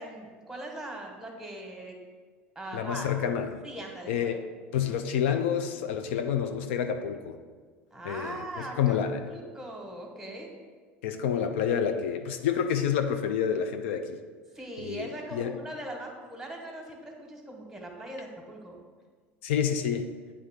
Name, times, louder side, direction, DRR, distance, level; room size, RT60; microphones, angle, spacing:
voice 1, 0.0-2.0 2.5-3.1 3.6-4.4 7.9-10.5 14.5-18.8, right 1 dB, 5° right, 1 dB, 1.3 m, -40 dB
voice 2, 2.7-3.6 4.1-4.4 4.7-7.4 8.0-9.2 11.0-14.2 14.8-15.5 19.4-20.1, left 8 dB, 75° left, 7 dB, 0.4 m, -28 dB
8.6 x 3.4 x 3.6 m, 1.5 s
hypercardioid pair, 80°, 7 cm